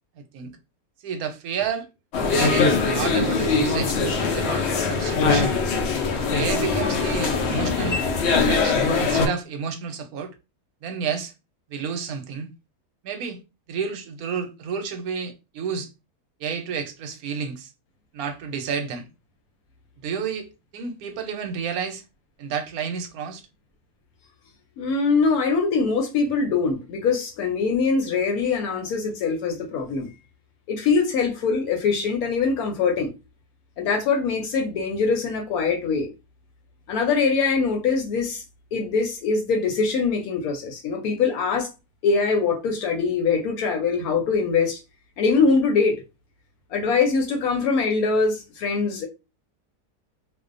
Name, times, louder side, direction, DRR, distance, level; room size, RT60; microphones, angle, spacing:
voice 1, 0.2-0.5 1.0-1.9 2.3-5.6 6.2-8.0 8.4-10.3 10.8-11.3 11.7-12.5 13.0-13.4 13.7-15.9 16.4-17.7 18.1-19.1 20.0-20.5 20.7-22.0 22.4-23.4, right 6 dB, 70° right, 1.0 m, -30 dB
sound 1, 2.1-9.3, left 4 dB, 90° left, 0.5 m, -22 dB
voice 2, 24.8-30.1 30.7-33.1 33.8-36.1 36.9-38.4 38.7-41.7 42.0-44.8 45.2-46.0 46.7-49.1, left 4 dB, 75° left, 1.0 m, -23 dB
2.6 x 2.1 x 2.4 m
omnidirectional pair, 1.7 m